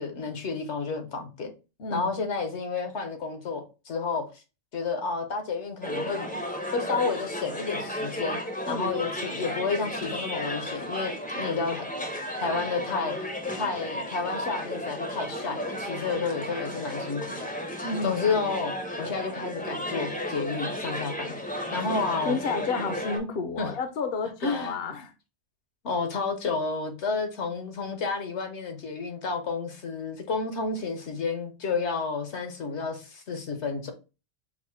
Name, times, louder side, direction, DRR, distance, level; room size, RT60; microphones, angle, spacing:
voice 1, 0.0-1.5 1.9-4.3 4.7-6.4 6.7-8.4 8.7-11.9 12.4-13.3 13.6-17.5 18.0-18.7 19.0-22.4 23.6-23.7 24.4-24.8 25.8-33.9, left 4 dB, 80° left, 1.2 m, -31 dB
sound 1, 5.8-23.2, equal, 10° left, 0.5 m, -34 dB
voice 2, 17.8-18.2 22.3-25.1, left 4 dB, 65° left, 0.8 m, -31 dB
4.7 x 2.1 x 4.3 m
omnidirectional pair, 1.2 m